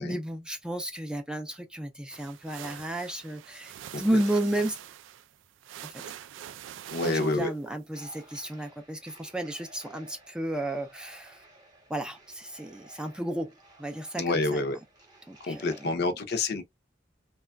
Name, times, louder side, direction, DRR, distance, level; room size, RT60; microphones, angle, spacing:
voice 1, 0.0-4.8 5.8-6.0 7.0-11.4 11.9-13.5 13.8-14.6 15.3-15.6, right 1 dB, 5° right, 0.4 m, -32 dB
sound 1, 2.1-7.7, right 10 dB, 80° right, 0.3 m, -44 dB
voice 2, 6.9-7.5 14.2-14.8 15.4-16.6, left 3 dB, 60° left, 0.6 m, -28 dB
sound 2, 7.9-16.0, right 2 dB, 20° right, 0.9 m, -55 dB
3.2 x 2.3 x 2.2 m
head